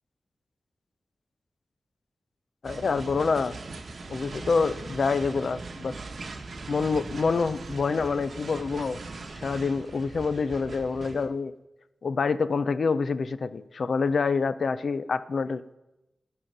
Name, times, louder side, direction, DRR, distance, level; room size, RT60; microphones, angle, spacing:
voice 1, 2.6-3.6 4.1-6.0 6.7-9.0 9.4-11.5 12.0-15.8, left 4 dB, 65° left, 14 dB, 0.4 m, -27 dB
sound 1, 2.6-11.3, right 3 dB, 65° right, 1.0 m, -40 dB
11.5 x 6.2 x 5.3 m, 0.96 s
wide cardioid pair, 105°, 0 cm